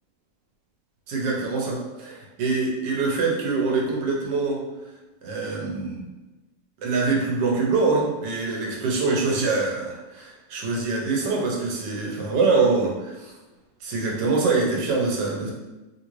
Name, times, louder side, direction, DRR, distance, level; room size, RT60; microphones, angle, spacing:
voice 1, 1.1-4.6 5.2-6.1 6.8-13.3 13.8-15.5, right 3 dB, 75° right, -2 dB, 1.4 m, -24 dB
3.3 x 2.6 x 3.0 m, 1.1 s
omnidirectional pair, 1.9 m